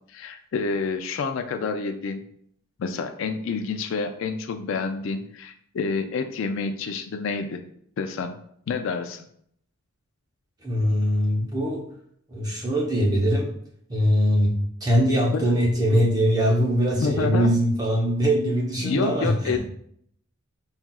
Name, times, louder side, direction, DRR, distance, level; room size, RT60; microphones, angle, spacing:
voice 1, 0.1-2.2 2.8-7.6 8.0-8.3 8.7-9.3 15.3-15.5 16.9-17.6 18.8-19.6, left 4 dB, 60° left, 7 dB, 0.3 m, -28 dB
voice 2, 10.6-11.8 12.3-13.5 13.9-19.6, equal, 15° right, -2 dB, 0.7 m, -22 dB
5.5 x 2.4 x 2.3 m, 0.66 s
head